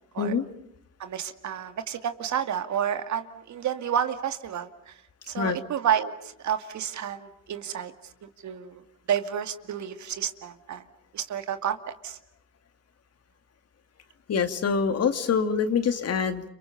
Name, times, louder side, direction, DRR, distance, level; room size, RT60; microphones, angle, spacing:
voice 1, 1.0-5.0 5.3-8.8 9.1-10.8 11.1-12.2, right 9 dB, 70° right, 8 dB, 2.3 m, -30 dB
voice 2, 14.3-16.4, left 6 dB, 55° left, 8 dB, 2.6 m, -25 dB
30.0 x 27.0 x 6.8 m, 0.75 s
cardioid pair, 90°, 30 cm